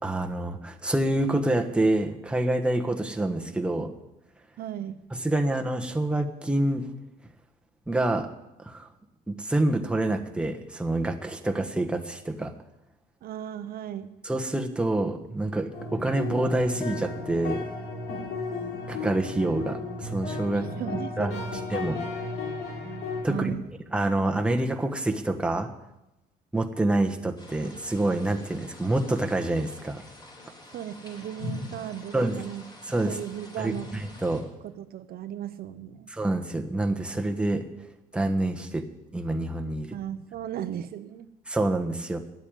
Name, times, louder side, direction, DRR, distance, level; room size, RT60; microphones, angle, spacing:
voice 1, 0.0-3.9 5.1-6.9 7.9-8.3 8.6-8.9 9.3-12.5 14.2-17.6 18.9-20.7 21.2-21.4 21.7-22.0 23.2-23.5 23.9-25.7 26.5-30.0 32.1-32.4 32.9-33.2 33.6-34.5 36.1-37.6 38.1-38.9 39.1-40.0 41.5-42.2, right 1 dB, 5° right, 4 dB, 1.2 m, -27 dB
voice 2, 4.6-5.0 13.2-14.1 20.5-21.6 23.3-23.7 30.6-32.6 33.0-33.9 34.6-36.1 39.9-41.3, right 10 dB, 65° right, 11 dB, 0.8 m, -36 dB
sound 1, 15.7-23.2, left 3 dB, 80° left, 4.0 m, -34 dB
sound 2, 27.4-34.4, left 2 dB, 25° left, 4.2 m, -43 dB
11.0 x 8.3 x 9.0 m, 0.92 s
cardioid pair, 110°, 17 cm